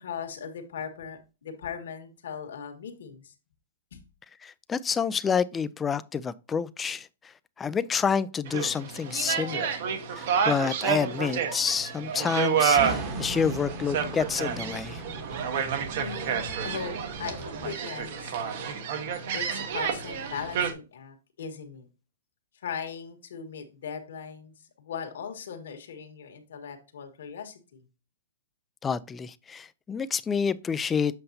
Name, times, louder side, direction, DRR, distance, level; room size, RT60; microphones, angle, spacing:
voice 1, 0.0-3.3 3.9-4.0 16.0-18.7 19.3-21.9 22.6-27.8, left 7 dB, 75° left, 1.7 m, -39 dB
voice 2, 4.4-7.1 7.6-9.8 10.1-15.0 28.8-31.2, left 6 dB, 15° left, 0.4 m, -28 dB
sound 1, 8.5-20.7, right 7 dB, 55° right, 1.2 m, -29 dB
sound 2, 12.7-17.7, right 3 dB, 30° right, 1.2 m, -37 dB
7.7 x 5.5 x 2.7 m
hypercardioid pair, 150°, 0 cm